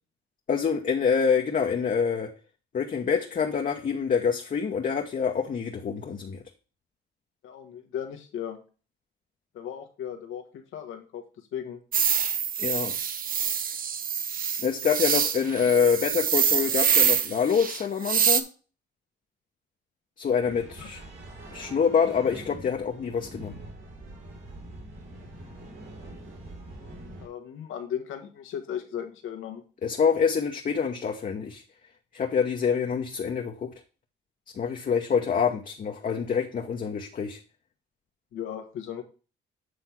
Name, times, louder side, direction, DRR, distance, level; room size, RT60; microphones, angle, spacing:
voice 1, 0.5-2.3 2.7-6.4 12.6-13.0 14.6-18.4 20.2-21.0 21.5-23.6 29.8-31.6 32.1-33.7 34.5-37.4, left 6 dB, 45° left, 1 dB, 1.0 m, -26 dB
voice 2, 7.4-8.6 9.5-10.4 10.7-11.2 11.5-11.8 20.8-20.9 27.2-29.6 38.3-39.0, left 9 dB, 85° left, 6 dB, 1.4 m, -36 dB
sound 1, 11.9-18.4, right 7 dB, 45° right, 0.7 m, -25 dB
sound 2, 20.4-27.3, right 1 dB, 70° right, 4.0 m, -44 dB
7.9 x 3.4 x 5.8 m, 0.36 s
cardioid pair, 90°, 20 cm